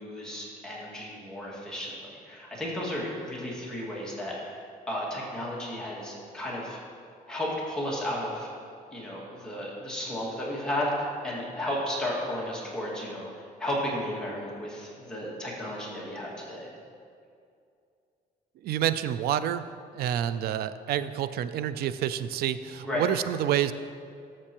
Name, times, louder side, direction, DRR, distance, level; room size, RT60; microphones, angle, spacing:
voice 1, 0.0-6.8 7.3-8.5 8.9-13.3 13.6-16.7 22.8-23.1, left 1 dB, 5° left, -6 dB, 2.0 m, -33 dB
voice 2, 18.6-19.7 19.9-23.7, right 11 dB, 70° right, 13 dB, 0.4 m, -28 dB
13.0 x 7.5 x 3.0 m, 2.4 s
cardioid pair, 140°, 16 cm